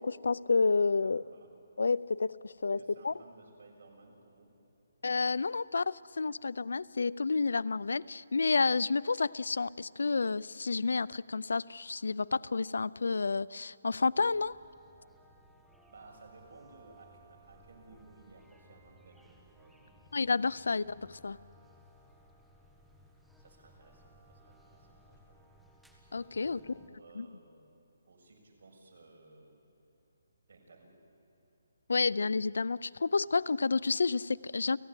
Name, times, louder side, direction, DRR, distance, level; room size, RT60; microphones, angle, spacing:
voice 1, 0.0-1.2 1.8-3.1 5.0-14.6 20.1-21.4 26.1-26.6 27.2-27.3 31.9-34.8, left 4 dB, 80° left, 21 dB, 0.5 m, -30 dB
voice 2, 1.0-1.5 2.8-4.5 15.9-20.0 23.4-25.2 26.4-27.7 28.1-29.6 30.5-30.9, right 3 dB, 60° right, 0 dB, 7.0 m, -57 dB
sound 1, 14.2-26.9, right 1 dB, ahead, 1.6 m, -61 dB
30.0 x 16.5 x 9.8 m, 2.8 s
hypercardioid pair, 170°, 0 cm